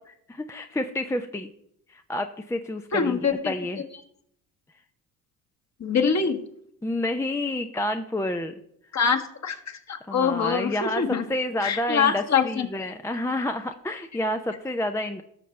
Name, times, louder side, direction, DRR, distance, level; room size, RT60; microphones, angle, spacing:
voice 1, 0.3-1.5 1.9-3.2 3.4-3.8 6.8-8.6 10.1-11.0 11.3-15.2, left 1 dB, 5° left, 6 dB, 0.6 m, -29 dB
voice 2, 2.9-3.5 5.8-6.4 8.9-11.3 11.6-12.7, left 6 dB, 35° left, 5 dB, 1.5 m, -24 dB
17.5 x 6.6 x 3.3 m, 0.72 s
hypercardioid pair, 55°, 48 cm